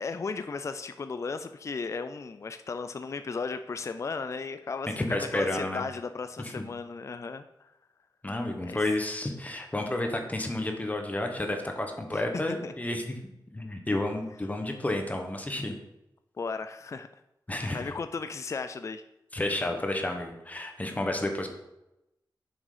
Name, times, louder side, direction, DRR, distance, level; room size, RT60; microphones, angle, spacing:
voice 1, 0.0-7.7 8.6-8.8 12.1-12.7 16.4-17.1 17.7-19.0, left 4 dB, 40° left, 10 dB, 0.4 m, -35 dB
voice 2, 5.0-5.8 6.4-6.6 8.2-13.2 13.5-15.7 17.5-17.8 19.3-21.5, left 1 dB, 20° left, 4 dB, 1.1 m, -31 dB
7.4 x 6.3 x 5.0 m, 0.90 s
wide cardioid pair, 140°, 8 cm